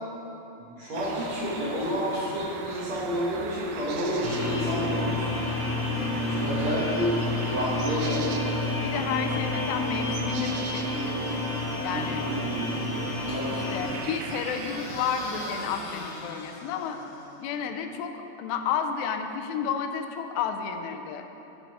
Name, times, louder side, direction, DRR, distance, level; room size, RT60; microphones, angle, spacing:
voice 1, 0.6-5.6 6.2-7.1 7.5-8.3 11.9-12.9 13.3-13.6, equal, 60° right, -7 dB, 2.0 m, -30 dB
sound 1, 0.9-15.8, right 5 dB, 90° right, 1.9 m, -40 dB
sound 2, 4.2-14.0, left 2 dB, 10° left, 1.2 m, -30 dB
voice 2, 8.8-11.4 11.8-12.2 13.5-17.0 17.4-21.3, left 7 dB, 90° left, 6 dB, 2.8 m, -32 dB
sound 3, 13.0-17.6, left 3 dB, 75° left, 2.6 m, -43 dB
9.1 x 9.1 x 4.8 m, 2.9 s
omnidirectional pair, 4.8 m